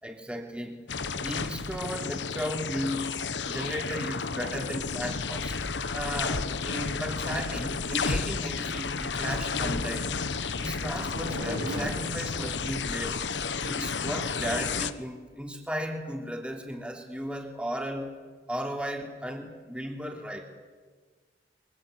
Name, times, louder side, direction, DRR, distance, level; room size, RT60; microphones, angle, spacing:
voice 1, 0.0-0.8 1.2-3.2 3.4-5.6 5.9-10.1 10.6-13.3 13.6-18.2 18.5-20.5, equal, 5° right, 1 dB, 3.1 m, -35 dB
sound 1, 0.9-14.9, left 4 dB, 85° left, 1.1 m, -32 dB
sound 2, 10.1-11.9, right 1 dB, 70° right, 7.6 m, -38 dB
25.0 x 23.5 x 8.0 m, 1.5 s
head